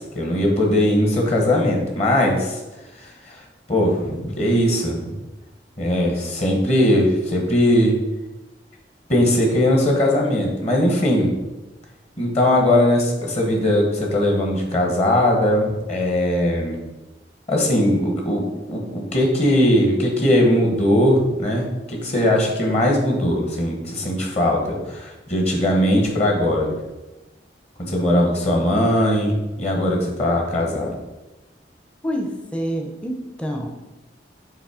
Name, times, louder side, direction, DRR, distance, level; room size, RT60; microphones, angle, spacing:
voice 1, 0.0-2.6 3.0-5.2 5.8-7.9 9.1-11.4 12.2-16.8 17.5-26.7 27.8-30.9, left 1 dB, 40° left, 0 dB, 1.2 m, -20 dB
voice 2, 32.0-33.7, equal, 5° left, 2 dB, 0.6 m, -27 dB
7.3 x 3.1 x 4.9 m, 1.1 s
head